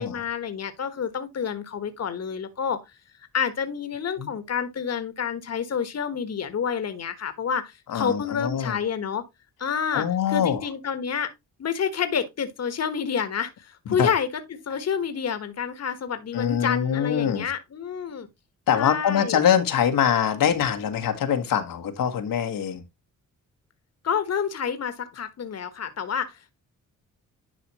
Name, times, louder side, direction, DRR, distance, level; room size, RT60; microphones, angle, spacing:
voice 1, 0.0-2.8 3.2-9.2 9.6-11.3 11.6-18.3 18.8-19.4 24.0-26.5, left 7 dB, 50° left, 1.4 m, -29 dB
voice 2, 7.9-8.8 9.9-10.6 14.0-14.1 16.3-17.5 18.7-22.8, left 8 dB, 85° left, 1.5 m, -23 dB
10.5 x 5.0 x 2.9 m
cardioid pair, 95°, 32 cm